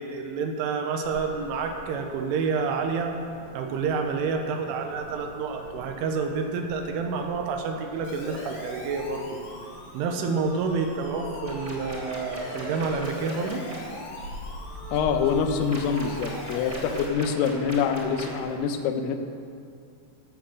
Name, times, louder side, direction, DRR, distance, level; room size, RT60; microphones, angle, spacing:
voice 1, 0.0-3.2 3.5-9.4 9.9-13.6, right 5 dB, 85° right, 4 dB, 3.4 m, -29 dB
sound 1, 1.0-18.6, right 1 dB, 65° right, 5.0 m, -45 dB
Siren, 8.0-17.1, left 2 dB, 70° left, 1.3 m, -40 dB
sound 2, 11.5-13.8 15.7-18.4, right 1 dB, 35° right, 1.4 m, -40 dB
voice 2, 14.9-19.2, left 6 dB, 90° left, 6 dB, 3.5 m, -25 dB
15.5 x 7.7 x 6.1 m, 2.4 s
omnidirectional pair, 5.7 m